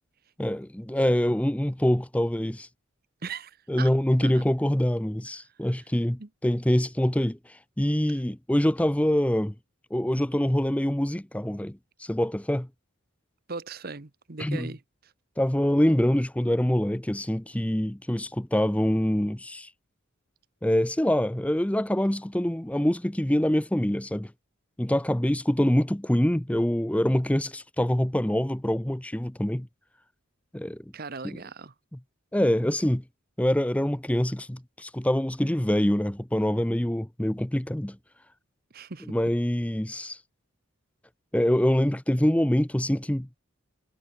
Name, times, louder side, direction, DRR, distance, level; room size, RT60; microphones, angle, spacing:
voice 1, 0.4-2.7 3.7-7.4 7.8-9.5 9.9-12.7 14.4-14.7 15.4-19.7 20.6-24.3 24.8-29.7 30.5-30.8 31.2-31.4 31.9-32.0 32.3-33.0 33.4-38.0 39.1-40.2 41.3-43.4, equal, 5° left, 0.6 m, -25 dB
voice 2, 3.2-3.9 4.2-4.4 6.2-6.3 13.5-14.8 30.9-31.7 38.7-39.1, right 4 dB, 45° right, 1.0 m, -38 dB
head